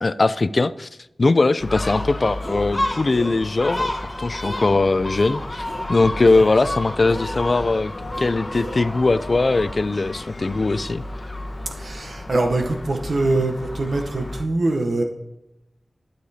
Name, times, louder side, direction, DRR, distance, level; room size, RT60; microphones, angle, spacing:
voice 1, 0.0-0.9 1.2-3.9 4.2-5.6 5.9-7.9 8.2-11.0, left 3 dB, 50° left, 15 dB, 0.3 m, -20 dB
sound 1, 1.6-4.0 6.0-11.2, left 2 dB, 90° left, 1.8 m, -40 dB
Gull seagull, 1.6-14.4, left 1 dB, 25° left, 1.0 m, -31 dB
sound 2, 1.9-2.1 2.4-2.8 3.1-3.3 3.7-4.1 4.4-4.7 5.1-5.3 5.6-6.8 7.1-7.7 8.1-9.1, equal, 20° right, 2.1 m, -38 dB
voice 2, 11.7-15.0, right 2 dB, 70° right, 4 dB, 0.8 m, -23 dB
13.0 x 6.6 x 2.7 m, 0.91 s
wide cardioid pair, 90°, 0 cm